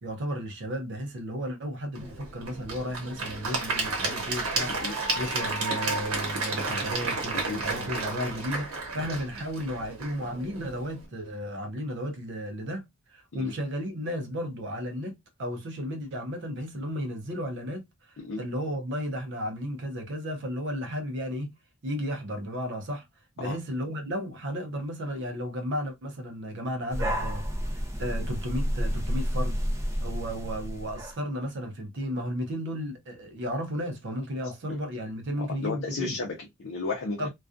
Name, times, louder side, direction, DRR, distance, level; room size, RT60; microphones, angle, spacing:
voice 1, 0.0-12.8 13.1-21.5 21.8-23.0 23.4-29.6 30.0-36.2 37.2-37.3, equal, 60° right, 0.6 m, -34 dB
Applause / Crowd, 1.9-11.0, right 3 dB, 90° right, 1.0 m, -32 dB
voice 2, 7.3-7.7 13.3-13.5 18.2-18.4 23.4-23.6 34.7-34.8 35.4-37.3, left 3 dB, 60° left, 0.6 m, -34 dB
sound 1, 26.9-31.2, equal, 15° right, 0.5 m, -30 dB
2.4 x 2.3 x 2.4 m
head